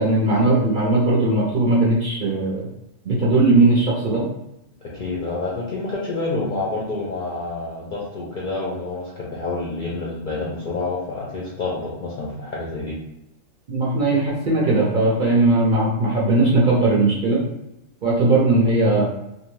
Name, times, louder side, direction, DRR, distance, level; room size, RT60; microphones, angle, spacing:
voice 1, 0.0-2.7 3.1-4.3 13.7-17.4 18.0-19.0, right 2 dB, 55° right, -4 dB, 0.6 m, -18 dB
voice 2, 4.8-13.0, left 3 dB, 65° left, -4 dB, 0.5 m, -28 dB
2.6 x 2.1 x 3.0 m, 0.86 s
omnidirectional pair, 1.3 m